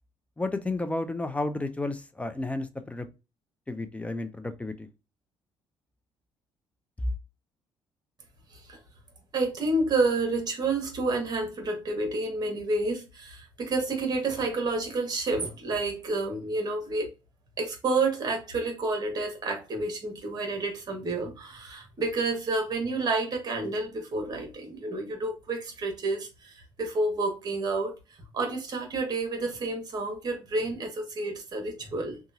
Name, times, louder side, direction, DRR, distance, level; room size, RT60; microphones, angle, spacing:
voice 1, 0.4-3.1 3.7-4.9, left 2 dB, 15° left, 0.4 m, -32 dB
voice 2, 9.3-17.1 17.6-27.9 28.3-32.2, right 3 dB, 45° right, 1.2 m, -29 dB
2.9 x 2.3 x 2.6 m
cardioid pair, 90°, 10 cm